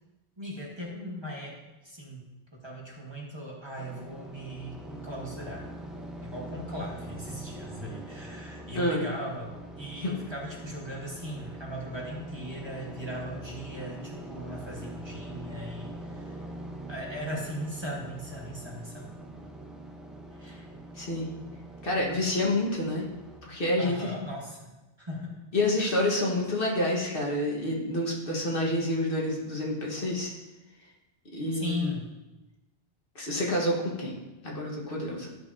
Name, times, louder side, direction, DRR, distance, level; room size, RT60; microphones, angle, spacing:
voice 1, 0.4-1.6 1.8-2.3 2.6-5.7 6.2-15.9 16.2-16.3 16.9-19.1 20.4-20.6 23.8-24.7 25.0-25.5 25.8-25.9 31.5-32.1, equal, 25° right, -3 dB, 1.4 m, -38 dB
sound 1, 3.8-23.4, right 1 dB, ahead, 0.8 m, -43 dB
voice 2, 8.8-9.1 10.0-10.1 20.5-20.6 21.0-21.3 21.8-23.1 23.4-24.1 25.5-30.3 31.3-31.9 33.2-34.1 34.4-35.3, left 1 dB, 60° left, -2 dB, 1.6 m, -28 dB
12.5 x 5.6 x 2.7 m, 1.1 s
omnidirectional pair, 1.0 m